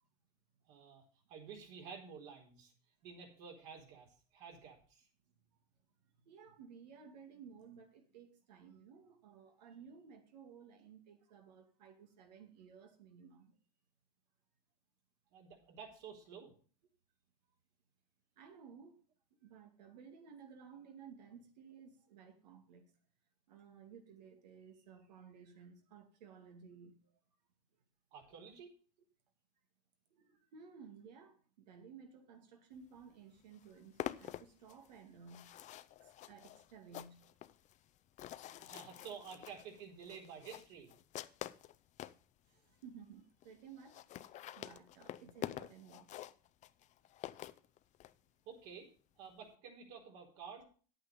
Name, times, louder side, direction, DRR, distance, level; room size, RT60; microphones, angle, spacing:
voice 1, 0.7-1.0 1.3-2.7 3.0-4.1 4.3-5.1 15.3-16.5 28.1-28.7 38.6-40.9 48.5-48.9 49.2-50.6, right 6 dB, 65° right, 4.2 m, -51 dB
voice 2, 6.1-13.5 18.4-19.0 19.4-22.9 23.5-27.0 30.1-35.5 36.0-37.3 38.5-38.6 42.5-46.1, right 6 dB, 85° right, 2.4 m, -56 dB
sound 1, 33.0-33.1 33.4-42.2 42.8-42.9 43.1-43.2 43.4-43.5 43.8-48.1, left 13 dB, 35° left, 0.6 m, -47 dB
9.6 x 8.8 x 5.2 m
supercardioid pair, 115°, 21 cm